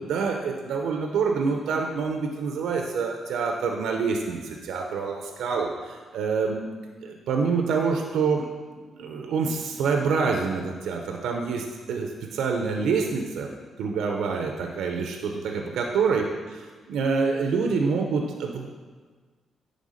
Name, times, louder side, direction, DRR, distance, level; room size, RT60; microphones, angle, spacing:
voice 1, 0.0-6.7 7.0-8.5 8.9-13.5 13.8-16.2 16.9-18.7, right 5 dB, 85° right, 2 dB, 0.6 m, -26 dB
9.5 x 3.5 x 5.0 m, 1.5 s
cardioid pair, 95°, 0 cm